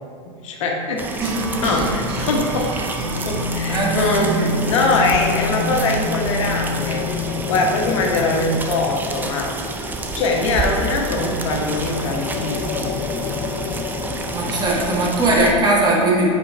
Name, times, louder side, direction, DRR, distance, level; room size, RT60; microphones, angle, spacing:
voice 1, 0.4-1.3 1.6-2.7 3.0-4.3 4.6-7.1 7.5-9.5 10.1-12.9, left 2 dB, 80° left, 0 dB, 1.1 m, -22 dB
sound 1, 1.0-15.5, right 2 dB, 10° right, 0.5 m, -29 dB
voice 2, 1.2-1.7 3.7-4.5 14.3-16.3, right 2 dB, 25° right, -3 dB, 1.4 m, -20 dB
sound 2, 1.2-8.1, left 1 dB, 60° right, 0.8 m, -27 dB
sound 3, 6.0-14.6, left 7 dB, 45° left, 0.4 m, -32 dB
5.3 x 4.5 x 4.4 m, 2.1 s
supercardioid pair, 125°, 16 cm